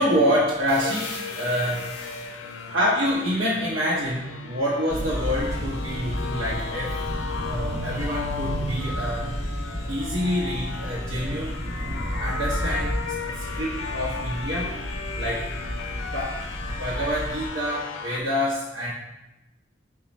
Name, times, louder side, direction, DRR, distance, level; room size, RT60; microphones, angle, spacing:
voice 1, 0.0-1.9 2.7-7.0 7.4-9.3 9.9-11.6 12.2-13.0 13.3-14.8 15.2-15.5 16.1-16.4 16.7-18.9, equal, 65° right, -7 dB, 0.7 m, -26 dB
sound 1, 0.7-4.3, left 3 dB, 35° left, 0.6 m, -42 dB
sound 2, 0.8-18.2, left 4 dB, 80° left, 0.4 m, -35 dB
sound 3, 4.9-17.5, equal, 15° right, 0.5 m, -32 dB
4.9 x 2.2 x 4.2 m, 0.97 s
head